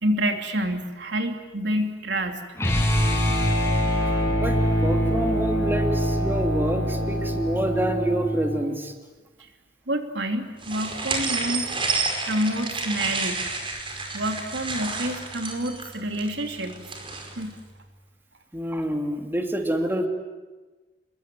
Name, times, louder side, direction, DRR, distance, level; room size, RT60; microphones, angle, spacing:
voice 1, 0.0-2.4 9.9-11.7 12.3-13.5 14.1-16.8 17.4-17.6, right 1 dB, 85° right, 5 dB, 3.0 m, -28 dB
sound 1, 2.6-8.6, equal, 15° left, 7.7 m, -24 dB
voice 2, 4.4-8.9 18.5-20.1, equal, 10° right, 4 dB, 2.6 m, -27 dB
sound 2, 10.6-17.5, right 3 dB, 30° right, 5.1 m, -30 dB
27.5 x 22.5 x 9.3 m, 1.2 s
head